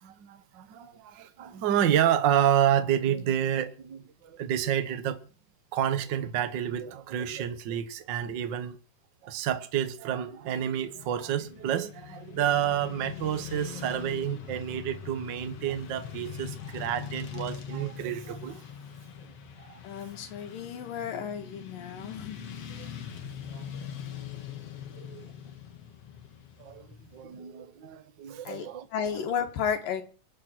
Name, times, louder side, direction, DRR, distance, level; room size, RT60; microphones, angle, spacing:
voice 1, 0.0-5.2 5.7-8.8 9.2-18.6 19.2-19.3 19.6-19.8 22.8-22.9 23.5-23.9 24.9-25.3 26.6-26.9 27.1-28.9, right 10 dB, 65° right, 1.1 m, -29 dB
Motorcycle / Traffic noise roadway noise, 10.6-27.2, left 8 dB, 50° left, 2.4 m, -42 dB
voice 2, 19.8-22.4 28.4-30.0, left 7 dB, 75° left, 3.4 m, -33 dB
25.5 x 9.0 x 4.6 m
omnidirectional pair, 4.0 m